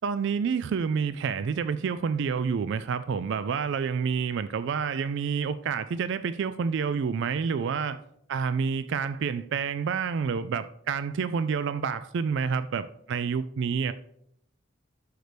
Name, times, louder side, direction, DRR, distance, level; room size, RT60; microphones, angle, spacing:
voice 1, 0.0-8.0 8.3-13.9, right 6 dB, 55° right, 13 dB, 0.3 m, -28 dB
12.0 x 6.6 x 3.3 m, 0.74 s
head